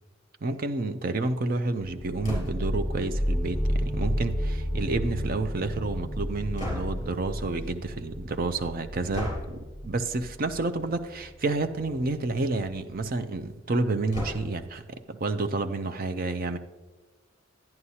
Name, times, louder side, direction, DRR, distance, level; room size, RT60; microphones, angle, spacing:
voice 1, 0.4-14.8 15.1-16.6, right 3 dB, 45° right, 8 dB, 0.5 m, -30 dB
sound 1, 1.8-13.2, equal, 5° right, 1.1 m, -32 dB
sound 2, 2.2-2.8 6.6-7.2 9.1-9.6 10.8-11.0 11.4-11.5 11.8-11.9 14.1-14.7, left 1 dB, 25° left, 3.4 m, -34 dB
11.0 x 10.5 x 2.8 m, 1.2 s
head